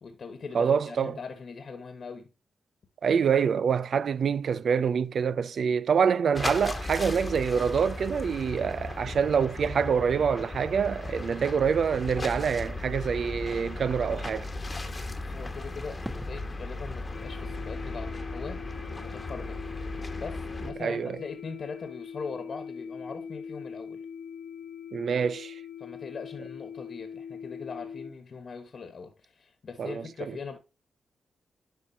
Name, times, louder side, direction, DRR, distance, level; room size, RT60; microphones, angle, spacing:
voice 1, 0.0-2.3 15.2-18.6 19.0-19.6 20.1-24.0 25.8-30.6, left 5 dB, 55° left, 1.3 m, -41 dB
voice 2, 0.5-1.1 3.0-14.5 20.8-21.2 24.9-25.6 29.8-30.3, right 6 dB, 65° right, 0.4 m, -26 dB
sound 1, 6.3-20.7, left 2 dB, 25° left, 1.2 m, -36 dB
Fireworks, 16.0-20.4 20.7-21.5, right 1 dB, 5° right, 0.7 m, -48 dB
sound 2, 17.1-28.1, left 6 dB, 85° left, 1.3 m, -42 dB
11.0 x 4.3 x 2.8 m
cardioid pair, 90°, 0 cm